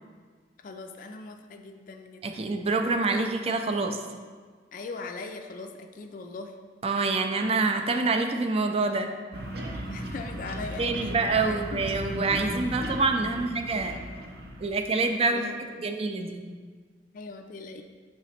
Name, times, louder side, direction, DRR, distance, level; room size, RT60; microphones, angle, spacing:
voice 1, 0.6-2.5 4.7-6.5 9.7-11.8 15.3-15.6 17.1-17.8, left 3 dB, 45° left, 5 dB, 0.3 m, -40 dB
voice 2, 2.2-4.0 6.8-9.1 10.8-14.0 14.6-16.4, right 3 dB, 35° right, 5 dB, 0.4 m, -26 dB
sound 1, 9.3-14.7, right 1 dB, 60° right, 0.8 m, -36 dB
7.5 x 3.0 x 4.2 m, 1.5 s
head